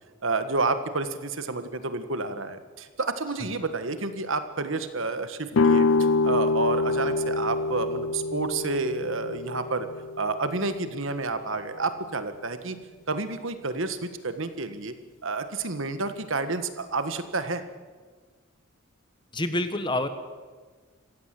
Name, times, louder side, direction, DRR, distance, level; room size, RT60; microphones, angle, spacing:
voice 1, 0.2-5.9 6.2-9.9 10.2-12.8 13.1-14.9 15.2-17.6, right 3 dB, 60° right, 10 dB, 1.5 m, -30 dB
sound 1, 5.5-11.3, left 3 dB, 65° left, 0.6 m, -26 dB
voice 2, 19.3-20.1, left 1 dB, 20° left, 10 dB, 1.3 m, -27 dB
26.5 x 15.5 x 7.7 m, 1.5 s
head